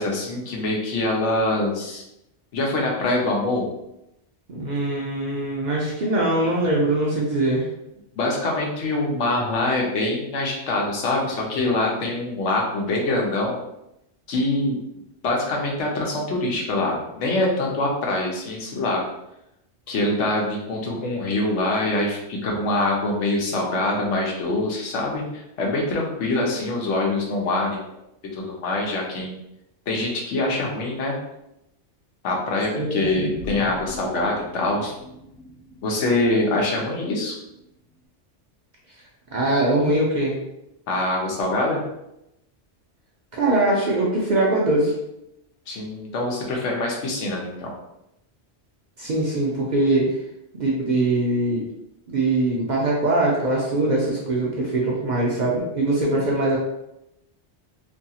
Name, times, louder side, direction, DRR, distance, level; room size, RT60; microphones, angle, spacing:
voice 1, 0.0-2.0 2.5-3.7 8.2-13.6 14.3-14.7 15.2-19.0 19.9-28.0 28.3-29.4 29.9-31.2 32.2-34.9 35.8-37.3 40.9-41.8 45.7-47.7, left 2 dB, 90° left, -1 dB, 1.0 m, -24 dB
voice 2, 4.5-7.7 32.8-33.3 39.3-40.4 43.3-44.9 49.0-50.2 50.5-51.6 52.1-56.6, right 2 dB, 55° right, -4 dB, 0.5 m, -22 dB
sound 1, 33.0-37.5 37.9-38.0, left 1 dB, 65° left, 0.8 m, -39 dB
2.6 x 2.3 x 2.7 m, 0.86 s
omnidirectional pair, 1.2 m